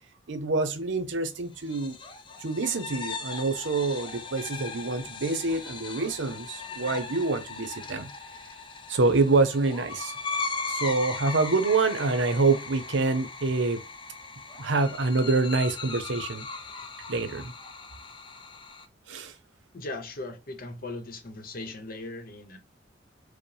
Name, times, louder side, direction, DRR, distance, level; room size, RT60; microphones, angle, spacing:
voice 1, 0.3-2.0 2.4-8.1 8.9-10.1 10.7-13.8 14.6-16.5 17.1-17.5 19.1-19.3, right 3 dB, 85° right, 0.7 m, -26 dB
sound 1, 1.6-18.9, left 4 dB, 25° left, 0.5 m, -38 dB
voice 2, 19.7-22.6, left 2 dB, 50° left, 0.8 m, -38 dB
4.9 x 2.1 x 3.2 m
head